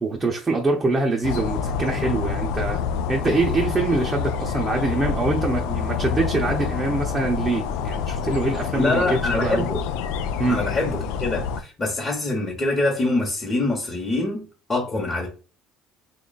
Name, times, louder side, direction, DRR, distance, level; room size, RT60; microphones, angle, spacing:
voice 1, 0.0-2.8 3.1-9.7 10.4-10.6, right 3 dB, 25° right, 0.7 m, -24 dB
sound 1, 1.2-11.6, left 7 dB, 80° left, 0.4 m, -27 dB
voice 2, 8.7-9.8 10.5-15.3, left 2 dB, 25° left, 1.1 m, -25 dB
2.9 x 2.4 x 4.0 m
supercardioid pair, 90°, 0 cm